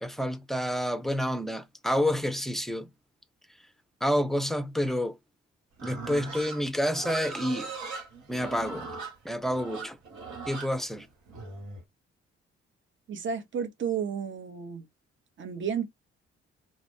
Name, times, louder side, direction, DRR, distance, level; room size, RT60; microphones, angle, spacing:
voice 1, 0.0-2.9 4.0-5.2 5.8-7.7 8.3-8.9 9.2-10.0 10.5-11.1, equal, ahead, 0.5 m, -29 dB
Livestock farm animals working animals, 5.8-11.8, right 4 dB, 65° right, 1.1 m, -39 dB
voice 2, 13.1-14.9 15.4-16.0, right 7 dB, 40° right, 0.8 m, -32 dB
2.4 x 2.1 x 3.4 m
hypercardioid pair, 40°, 31 cm